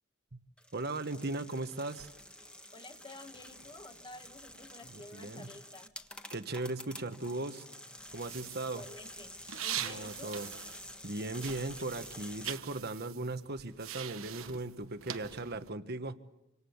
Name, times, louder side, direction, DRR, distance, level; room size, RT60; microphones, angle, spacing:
sound 1, 0.6-12.6, left 1 dB, 5° left, 1.7 m, -49 dB
voice 1, 0.7-2.1 4.9-5.5 6.3-7.7 8.1-8.8 9.8-10.5 11.0-16.2, right 2 dB, 50° right, 10 dB, 1.4 m, -38 dB
voice 2, 2.7-5.9 8.6-10.3, left 2 dB, 25° left, 6 dB, 2.1 m, -51 dB
sound 2, 8.2-11.1 11.3-15.7, right 10 dB, 75° right, 1.3 m, -43 dB
27.0 x 26.5 x 7.2 m, 0.91 s
head